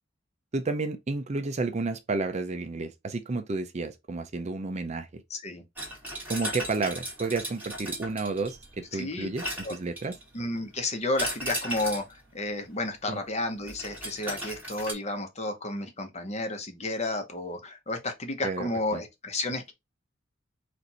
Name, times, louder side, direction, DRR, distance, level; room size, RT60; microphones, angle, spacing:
voice 1, 0.5-5.2 6.3-9.4 9.7-10.2 13.1-13.2 18.4-18.7, right 3 dB, 35° right, 0.4 m, -31 dB
voice 2, 5.3-5.6 8.9-9.3 9.6-9.7 10.3-19.7, left 2 dB, 35° left, 0.9 m, -32 dB
sound 1, 5.8-8.8 9.4-10.3 11.2-12.2 13.7-14.9, equal, 10° right, 1.6 m, -36 dB
4.5 x 2.6 x 4.0 m
head